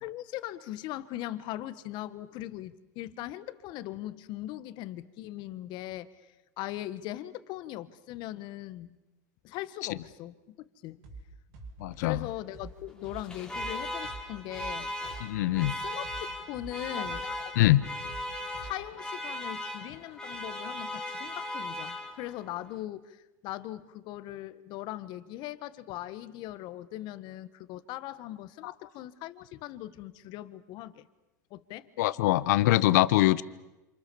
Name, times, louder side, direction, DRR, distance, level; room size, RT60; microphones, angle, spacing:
voice 1, 0.0-9.0 9.4-11.0 12.0-14.9 15.7-16.1 16.5-17.3 18.6-31.1 31.5-31.9, left 14 dB, 55° left, 13 dB, 1.6 m, -40 dB
sound 1, 11.0-11.2 11.5-15.2 15.5-19.0, right 3 dB, 70° right, 6.5 m, -46 dB
voice 2, 11.8-12.3 15.2-15.7 17.5-17.9 28.6-28.7 32.0-33.4, left 16 dB, 75° left, 16 dB, 1.0 m, -23 dB
Alarm, 13.1-22.5, left 1 dB, 10° left, 3.5 m, -38 dB
27.5 x 27.0 x 7.1 m, 1.0 s
supercardioid pair, 110°, 9 cm